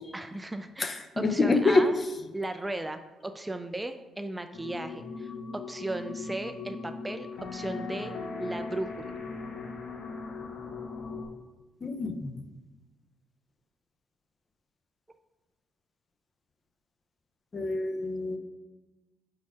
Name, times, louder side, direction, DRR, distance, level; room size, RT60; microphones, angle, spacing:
voice 1, 0.1-1.9 2.3-8.1 8.4-9.1, right 2 dB, 15° right, 8 dB, 0.3 m, -36 dB
voice 2, 0.8-1.8 11.8-12.3 17.5-18.4, left 3 dB, 35° left, 7 dB, 0.6 m, -26 dB
sound 1, 4.5-11.3, left 4 dB, 75° left, 0.9 m, -39 dB
4.7 x 4.2 x 4.8 m, 1.1 s
cardioid pair, 90°, 0 cm